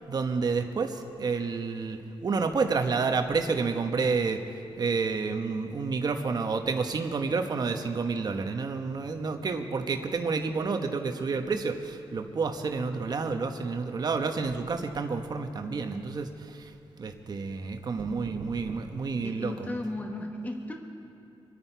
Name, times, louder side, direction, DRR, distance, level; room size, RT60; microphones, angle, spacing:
voice 1, 0.1-4.4 4.8-19.5, right 4 dB, 45° right, 6 dB, 1.0 m, -29 dB
voice 2, 19.2-20.7, left 1 dB, 15° left, 2 dB, 1.1 m, -35 dB
25.5 x 10.0 x 4.6 m, 2.9 s
wide cardioid pair, 150°, 10 cm